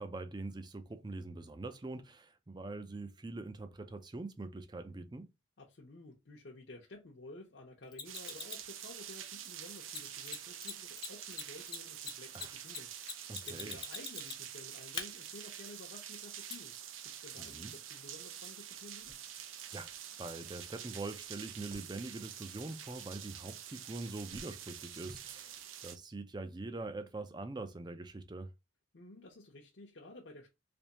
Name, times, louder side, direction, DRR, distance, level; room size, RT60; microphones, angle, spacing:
voice 1, 0.0-5.3 12.3-12.5 13.3-13.8 17.4-17.7 19.7-19.9 20.2-28.5, right 2 dB, 20° right, 0.4 m, -43 dB
voice 2, 5.6-16.7 17.0-19.2 28.9-30.5, left 2 dB, 60° left, 0.7 m, -53 dB
Mechanisms, 7.9-8.7 9.9-10.0 10.2-10.4 10.6-10.7 11.0-14.5 14.9-15.0 16.5-16.6, left 5 dB, 25° left, 0.6 m, -41 dB
sound 1, 8.0-26.0, right 10 dB, 90° right, 0.6 m, -47 dB
sound 2, 18.7-22.5 22.8-23.5 23.8-25.9 26.6-26.7 28.0-28.2, equal, 50° right, 1.1 m, -61 dB
3.5 x 3.1 x 2.9 m
head